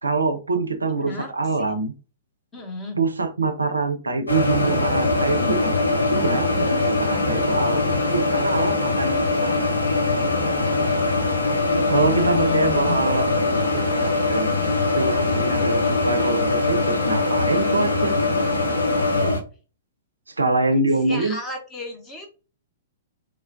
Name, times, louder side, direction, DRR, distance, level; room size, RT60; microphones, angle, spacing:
voice 1, 0.0-1.9 3.0-9.1 9.4-9.6 11.9-14.5 14.9-18.1 20.4-21.4, right 3 dB, 80° right, 9 dB, 0.4 m, -24 dB
voice 2, 2.5-3.1 11.5-13.0 21.0-22.3, left 5 dB, 15° left, 2 dB, 0.9 m, -32 dB
sound 1, 4.3-19.4, left 2 dB, 85° left, 0.8 m, -22 dB
3.0 x 2.1 x 2.5 m, 0.34 s
figure-of-eight pair, 110°, 0 cm